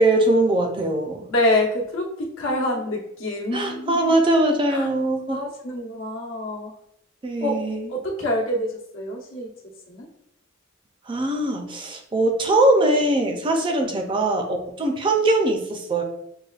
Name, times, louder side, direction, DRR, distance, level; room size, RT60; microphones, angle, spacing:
voice 1, 0.0-1.2 2.5-2.6 3.5-5.4 7.2-7.9 11.1-16.0, right 2 dB, 25° right, 3 dB, 0.4 m, -21 dB
voice 2, 1.3-2.1 2.4-4.1 4.7-4.9 5.3-6.7 7.4-7.5 7.9-8.7 8.9-9.5 9.9-10.1 13.8-13.9, left 1 dB, 75° left, -1 dB, 0.9 m, -26 dB
6.4 x 2.2 x 2.4 m, 0.76 s
head